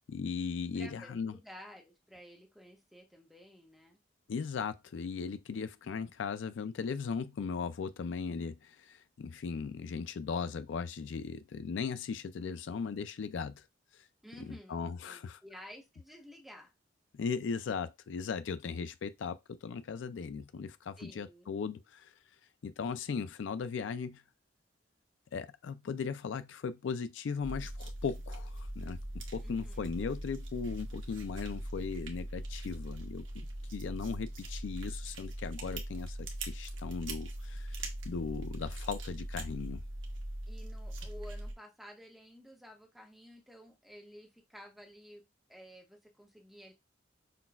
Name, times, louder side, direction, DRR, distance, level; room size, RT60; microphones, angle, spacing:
voice 1, 0.1-1.3 4.3-13.6 14.5-15.4 17.1-22.1 22.6-24.2 25.3-29.0 29.3-33.5 33.7-39.8, left 5 dB, 70° left, 0.4 m, -38 dB
voice 2, 0.7-4.0 14.2-16.7 21.0-21.5 29.4-29.9 40.5-46.7, equal, ahead, 0.9 m, -53 dB
sound 1, 27.4-41.5, right 1 dB, 90° right, 1.0 m, -41 dB
5.8 x 2.3 x 2.3 m
head